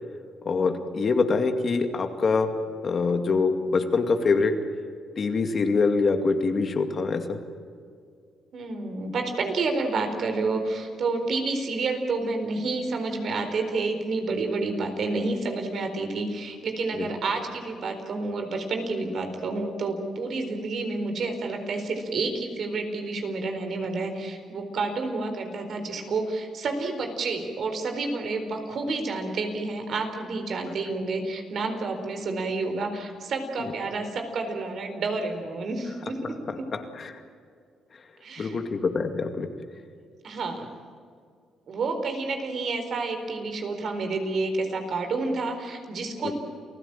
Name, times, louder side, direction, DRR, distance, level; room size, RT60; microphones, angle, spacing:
voice 1, 0.5-2.5 2.8-4.5 5.2-7.4 17.0-17.1 36.7-37.1 38.4-39.5 46.2-46.3, left 4 dB, 45° left, 6 dB, 2.2 m, -24 dB
voice 2, 8.5-36.7 38.2-38.6 40.2-40.7 41.7-46.3, right 3 dB, 60° right, 5 dB, 4.2 m, -29 dB
28.5 x 16.0 x 8.9 m, 2.2 s
cardioid pair, 90°, 0 cm